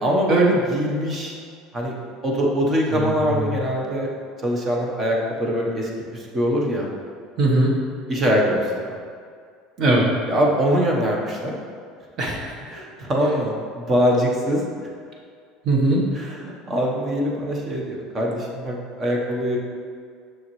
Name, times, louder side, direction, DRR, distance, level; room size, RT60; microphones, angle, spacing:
voice 1, 0.0-1.4 1.7-1.9 2.2-4.1 4.4-6.9 8.1-8.9 10.3-11.6 12.7-14.6 16.1-19.6, equal, 25° right, -1 dB, 1.1 m, -23 dB
voice 2, 2.9-3.6 7.4-7.7 9.8-10.1 12.2-12.5 15.6-16.1, right 2 dB, 40° right, -1 dB, 1.4 m, -20 dB
7.0 x 6.4 x 3.2 m, 2.2 s
cardioid pair, 140°, 0 cm